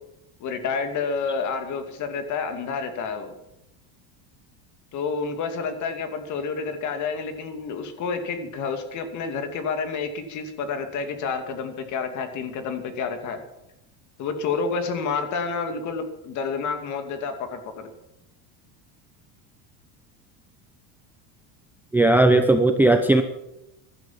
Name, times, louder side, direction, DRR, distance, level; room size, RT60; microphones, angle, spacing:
voice 1, 0.4-3.3 4.9-13.4 14.2-17.9, left 5 dB, 40° left, 7 dB, 2.5 m, -29 dB
voice 2, 21.9-23.2, right 2 dB, 5° right, 7 dB, 0.7 m, -17 dB
15.5 x 11.5 x 7.4 m, 0.88 s
cardioid pair, 145°, 43 cm